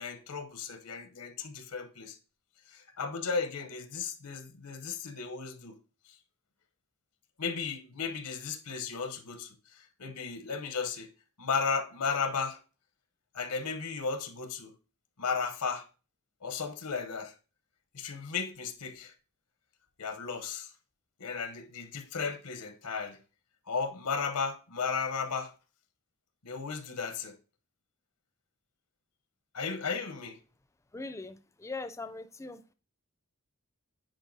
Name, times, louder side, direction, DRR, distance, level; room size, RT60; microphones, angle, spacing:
voice 1, 0.0-2.2 2.7-5.8 7.4-11.1 11.4-12.6 13.3-14.7 15.2-15.9 16.4-17.3 17.9-19.1 20.0-20.7 21.2-23.2 23.7-25.5 26.4-27.4 29.5-30.4, left 5 dB, 90° left, 0.9 m, -35 dB
voice 2, 30.9-32.6, left 3 dB, 15° left, 0.4 m, -41 dB
9.1 x 4.3 x 2.7 m
head